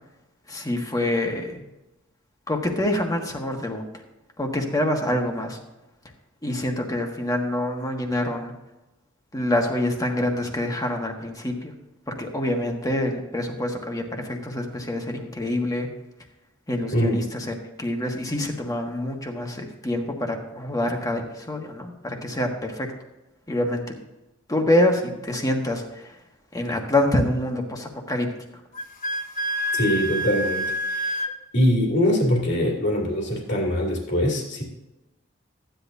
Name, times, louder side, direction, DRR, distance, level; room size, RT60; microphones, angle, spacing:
voice 1, 0.5-1.6 2.5-3.8 4.4-5.6 6.4-8.5 9.3-11.7 12.1-15.9 16.7-22.9 23.5-23.9 24.5-26.2 26.5-28.3, left 1 dB, 20° left, 2 dB, 1.5 m, -26 dB
Wind instrument woodwind instrument, 28.7-31.3, equal, 40° left, 1.0 m, -27 dB
voice 2, 29.7-31.2 31.5-34.6, equal, 60° left, -2 dB, 2.8 m, -23 dB
14.5 x 10.5 x 2.7 m, 0.99 s
head